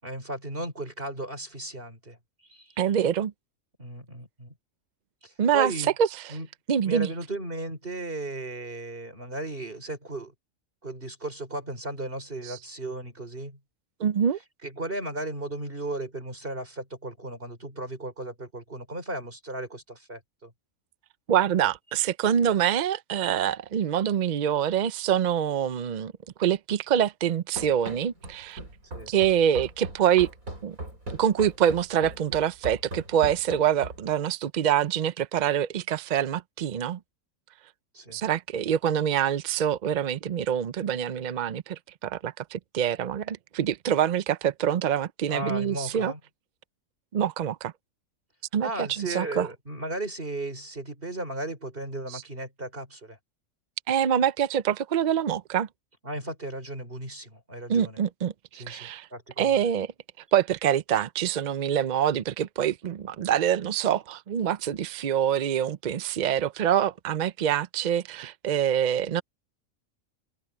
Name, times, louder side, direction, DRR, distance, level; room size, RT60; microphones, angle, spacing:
voice 1, 0.0-3.0 3.8-4.6 5.2-5.9 6.3-6.5 6.8-10.3 10.8-13.6 14.6-20.5 28.9-29.1 37.9-38.2 45.3-46.2 48.6-53.2 56.0-58.0 58.5-59.6, right 1 dB, 40° right, 5.3 m, -36 dB
voice 2, 2.8-3.3 5.4-5.7 6.0-6.1 6.7-7.1 12.5-12.6 14.0-14.4 21.3-26.1 26.4-28.6 29.1-30.3 30.6-30.8 31.2-37.0 38.1-46.1 47.1-47.7 48.5-49.5 52.1-52.2 53.9-55.7 57.7-59.1 59.4-59.9 60.3-69.2, right 9 dB, 65° right, 0.4 m, -25 dB
Run, 27.6-34.2, right 1 dB, 85° right, 8.4 m, -39 dB
omnidirectional pair, 1.4 m